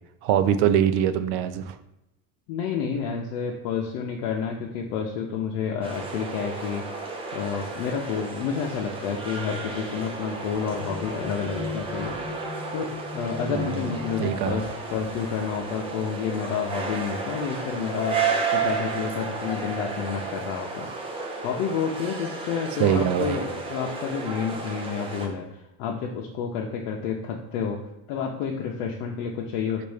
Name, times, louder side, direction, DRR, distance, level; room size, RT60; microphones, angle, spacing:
voice 1, 0.2-1.8 13.5-13.8 14.2-14.6 22.8-23.4, right 9 dB, 65° right, 11 dB, 0.5 m, -23 dB
voice 2, 2.5-6.8 7.3-12.2 12.7-20.9 21.4-27.8 28.1-29.9, left 6 dB, 90° left, 0 dB, 0.7 m, -30 dB
sound 1, 5.8-25.3, right 4 dB, 15° right, 0.4 m, -33 dB
sound 2, 10.4-17.0 17.9-18.1 18.4-19.0, left 4 dB, ahead, 1.0 m, -40 dB
4.1 x 2.6 x 4.9 m, 0.89 s
cardioid pair, 155°, 42 cm